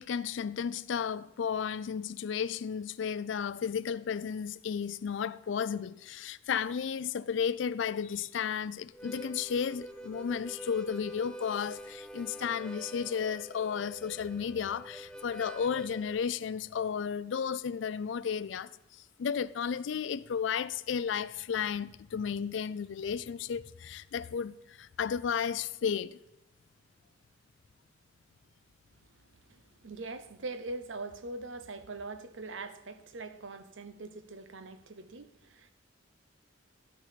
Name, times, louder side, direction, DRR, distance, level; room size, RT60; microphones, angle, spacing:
voice 1, 0.0-18.7 19.2-26.2, left 7 dB, 70° left, 0.4 m, -33 dB
Harmonica, 8.9-16.2, equal, 5° left, 0.5 m, -46 dB
voice 2, 29.8-35.7, right 3 dB, 75° right, 0.8 m, -42 dB
12.0 x 6.4 x 5.1 m
head